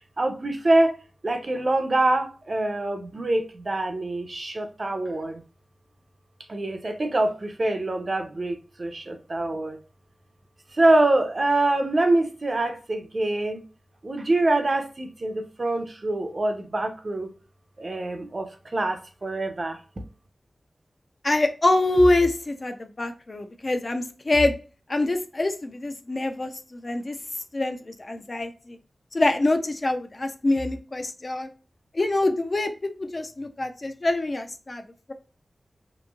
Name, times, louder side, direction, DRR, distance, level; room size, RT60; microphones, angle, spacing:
voice 1, 0.2-1.0 1.2-5.4 6.5-9.8 10.7-13.6 14.0-17.3 17.8-19.8, right 2 dB, 50° right, 6 dB, 0.5 m, -25 dB
voice 2, 21.2-24.5 24.9-27.2 27.5-28.8 29.1-31.5 31.9-34.8, left 2 dB, 45° left, 6 dB, 0.4 m, -25 dB
3.0 x 2.5 x 2.3 m, 0.35 s
wide cardioid pair, 80°, 0 cm